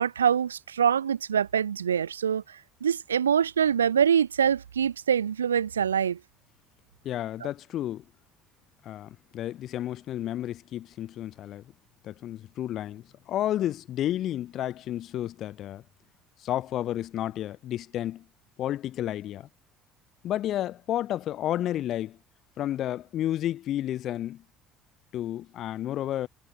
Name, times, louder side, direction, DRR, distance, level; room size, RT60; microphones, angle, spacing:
voice 1, 0.0-2.4 2.8-6.2, right 8 dB, 90° right, 0.8 m, -24 dB
voice 2, 7.0-8.0 8.8-11.6 12.0-15.8 16.4-18.2 18.6-19.5 20.2-22.2 22.6-24.4 25.1-26.3, left 12 dB, 55° left, 2.1 m, -31 dB
hypercardioid pair, 60°, 0 cm